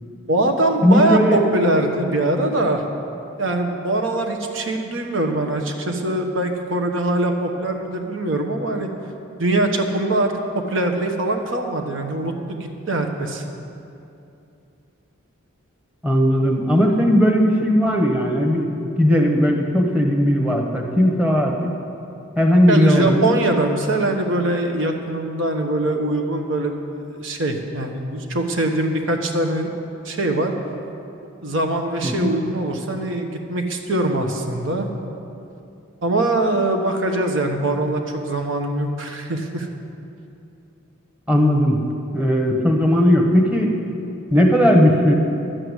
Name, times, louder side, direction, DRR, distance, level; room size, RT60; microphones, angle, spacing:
voice 1, 0.3-2.8 3.4-8.9 9.4-13.4 22.7-26.8 27.1-29.7 30.0-30.5 31.4-34.9 36.0-39.7, right 2 dB, 65° right, 4 dB, 1.2 m, -22 dB
voice 2, 0.8-1.4 16.0-18.7 19.0-21.7 22.4-23.3 32.0-32.3 41.3-41.8 42.1-43.7 44.3-45.1, equal, 5° right, 1 dB, 1.1 m, -17 dB
11.5 x 7.8 x 8.1 m, 2.7 s
head